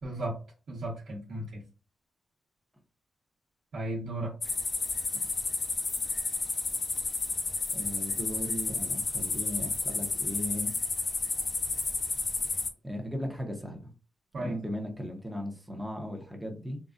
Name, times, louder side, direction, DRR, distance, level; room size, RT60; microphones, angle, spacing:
voice 1, 0.0-0.3 0.7-1.6 3.7-4.3 14.3-14.5, right 1 dB, 70° right, -5 dB, 1.0 m, -35 dB
sound 1, 4.4-12.7, left 3 dB, 45° left, 0.6 m, -31 dB
voice 2, 7.7-10.7 12.8-13.9 14.4-16.8, equal, 5° right, 1 dB, 0.8 m, -37 dB
3.8 x 2.3 x 2.5 m, 0.34 s
cardioid pair, 95°, 0 cm